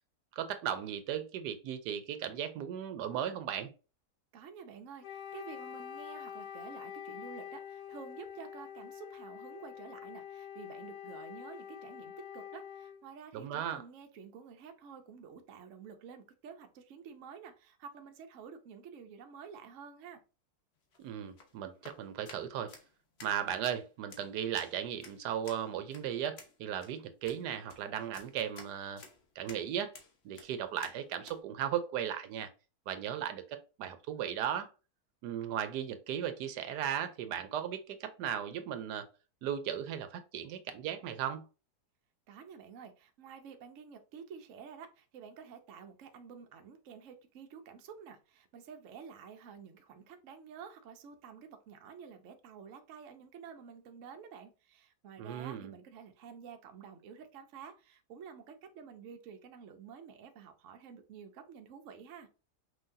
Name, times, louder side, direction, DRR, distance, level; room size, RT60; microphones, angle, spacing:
voice 1, 0.3-3.7 13.3-13.8 21.0-22.7 23.2-29.0 29.4-29.9 30.2-32.5 32.9-34.7 35.2-39.1 39.4-41.4 55.2-55.7, right 9 dB, 85° right, 1.2 m, -36 dB
voice 2, 4.3-20.2 42.3-62.3, right 6 dB, 60° right, 0.9 m, -50 dB
Wind instrument woodwind instrument, 5.0-13.0, left 9 dB, 80° left, 1.3 m, -46 dB
sound 1, 20.8-31.4, left 4 dB, 45° left, 1.0 m, -55 dB
5.6 x 2.9 x 2.6 m
omnidirectional pair, 1.7 m